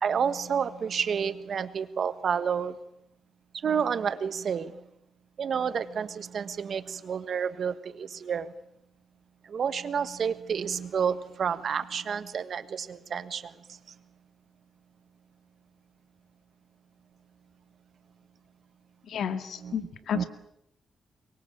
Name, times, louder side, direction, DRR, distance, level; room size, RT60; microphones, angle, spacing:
voice 1, 0.0-2.8 3.6-4.8 5.4-8.5 9.5-13.5 19.6-19.7 20.1-20.2, right 7 dB, 60° right, 13 dB, 1.5 m, -30 dB
voice 2, 19.0-20.2, left 8 dB, 70° left, 10 dB, 2.1 m, -32 dB
24.5 x 23.0 x 8.7 m, 0.78 s
cardioid pair, 105°, 0 cm